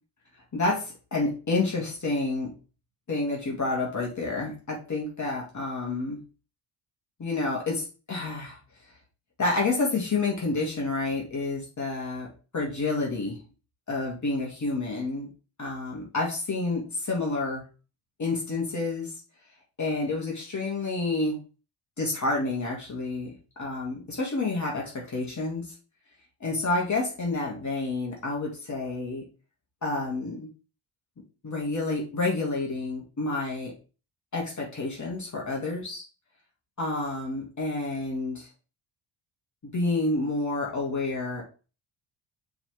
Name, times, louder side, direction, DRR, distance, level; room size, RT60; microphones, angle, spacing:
voice 1, 0.5-2.5 3.1-6.2 7.2-8.6 9.4-13.4 13.9-15.3 15.6-17.7 18.2-19.1 19.8-21.4 22.0-25.7 26.4-29.2 29.8-30.5 31.4-33.7 34.3-36.0 36.8-38.5 39.6-41.4, left 3 dB, 35° left, -2 dB, 2.3 m, -29 dB
6.9 x 4.0 x 3.4 m, 0.34 s
cardioid pair, 95°, 48 cm